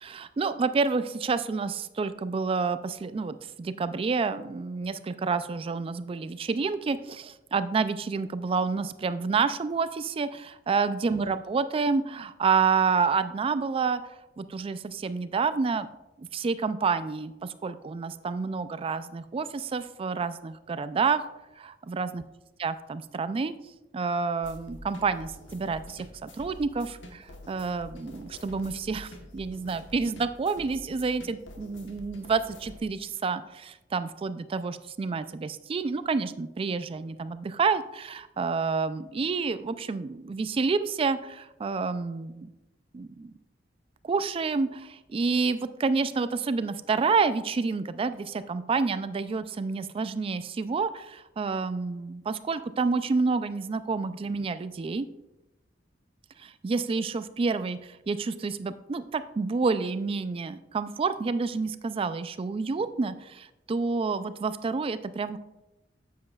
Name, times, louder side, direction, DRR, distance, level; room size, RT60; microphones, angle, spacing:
voice 1, 0.0-15.9 16.2-21.3 21.6-22.2 22.6-23.5 23.9-42.5 42.9-43.3 44.0-55.1 56.4-65.4, right 4 dB, 30° right, 13 dB, 0.3 m, -29 dB
sound 1, 24.4-32.8, left 1 dB, 75° left, 1.2 m, -47 dB
9.4 x 7.6 x 2.3 m, 0.97 s
head